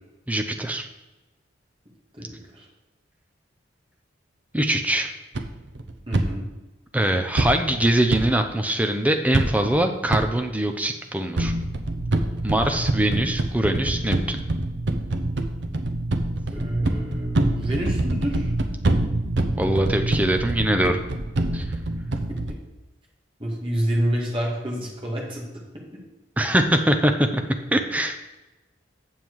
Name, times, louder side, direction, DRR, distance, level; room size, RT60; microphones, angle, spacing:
voice 1, 0.3-0.9 4.5-5.1 6.9-11.5 12.4-14.4 19.6-21.0 21.5-21.7 26.4-27.4 27.7-28.2, right 1 dB, 10° right, 5 dB, 0.6 m, -22 dB
voice 2, 2.1-2.7 6.1-6.5 16.5-18.5 22.3-22.4 23.4-25.4, equal, 25° right, -3 dB, 2.0 m, -28 dB
sound 1, 5.3-6.2 7.4-8.2 9.3-9.8 10.1-10.2 11.4-22.5, right 2 dB, 65° right, 0.8 m, -25 dB
7.4 x 7.3 x 4.7 m, 1.1 s
head